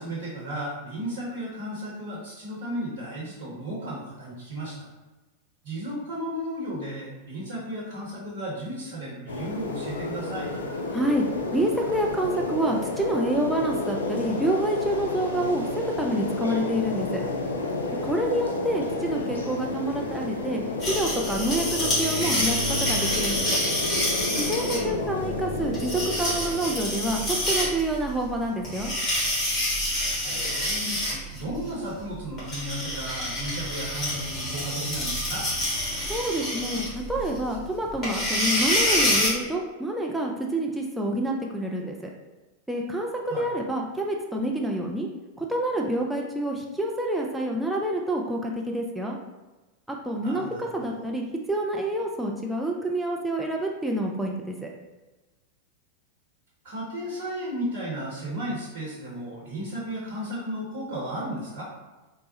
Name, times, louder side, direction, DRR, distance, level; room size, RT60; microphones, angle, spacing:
voice 1, 0.0-4.9 5.6-10.5 18.7-18.9 24.7-25.1 30.2-31.0 31.3-35.4 43.3-43.5 50.2-50.7 56.6-61.7, right 1 dB, 55° right, -6 dB, 0.9 m, -34 dB
sound 1, 9.3-27.5, left 2 dB, 70° left, 0.3 m, -31 dB
voice 2, 10.9-11.2 11.5-17.2 18.0-23.4 24.3-28.9 36.0-41.9 42.7-43.1 43.4-45.1 45.4-49.2 49.9-54.7, right 1 dB, 5° right, 0 dB, 0.3 m, -28 dB
sound 2, 20.8-39.3, left 1 dB, 20° left, 1.2 m, -28 dB
3.4 x 2.0 x 2.7 m, 1.2 s
figure-of-eight pair, 90°, 0 cm